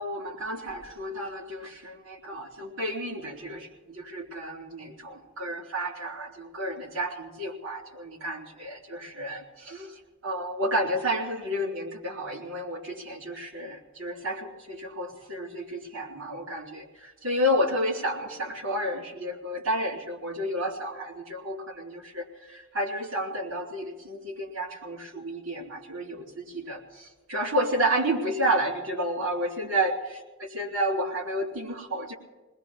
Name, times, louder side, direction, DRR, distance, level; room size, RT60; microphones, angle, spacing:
voice 1, 0.0-9.9 10.2-30.0 30.5-32.1, equal, 85° right, -1 dB, 3.6 m, -31 dB
29.5 x 20.5 x 2.2 m, 1.2 s
head